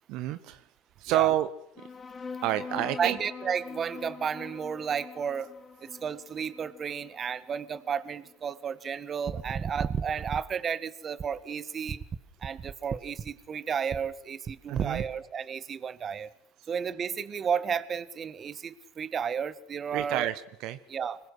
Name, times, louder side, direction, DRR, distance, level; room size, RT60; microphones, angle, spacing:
voice 1, 0.1-0.6 1.0-1.5 2.4-3.2 14.7-15.0 19.9-20.8, right 13 dB, 60° right, 13 dB, 1.2 m, -28 dB
sound 1, 1.8-8.7, left 5 dB, 30° left, 3.1 m, -44 dB
voice 2, 2.8-5.5 5.8-12.0 12.4-16.3 16.7-20.3 20.9-21.2, right 7 dB, 35° right, 16 dB, 1.6 m, -32 dB
25.5 x 21.0 x 6.3 m, 0.77 s
hypercardioid pair, 75°, 0 cm